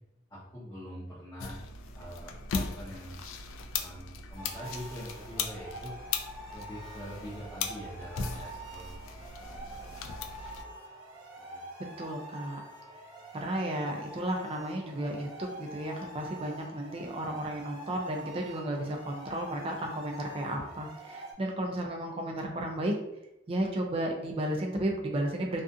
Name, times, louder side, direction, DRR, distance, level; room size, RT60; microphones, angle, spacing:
voice 1, 0.3-1.6 1.9-3.3 3.7-5.9 6.5-10.7 11.4-11.6, equal, 20° left, -10 dB, 0.7 m, -45 dB
sound 1, 1.4-10.6, left 5 dB, 85° left, 0.3 m, -38 dB
sound 2, 4.3-21.3, right 1 dB, 75° right, 0.7 m, -46 dB
voice 2, 12.0-12.6 13.3-22.9 23.5-25.6, right 1 dB, 30° right, 1 dB, 0.3 m, -33 dB
2.4 x 2.3 x 2.5 m, 0.86 s
head